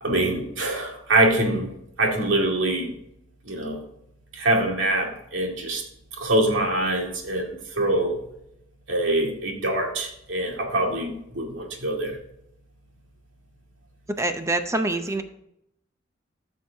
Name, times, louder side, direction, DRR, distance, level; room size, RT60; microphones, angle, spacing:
voice 1, 0.0-1.7 2.0-2.9 3.4-3.8 4.3-5.8 6.2-8.2 8.9-12.2, right 1 dB, 80° right, 0 dB, 2.2 m, -24 dB
voice 2, 14.2-15.2, right 2 dB, 15° right, 7 dB, 0.6 m, -25 dB
14.0 x 6.3 x 2.8 m, 0.78 s
head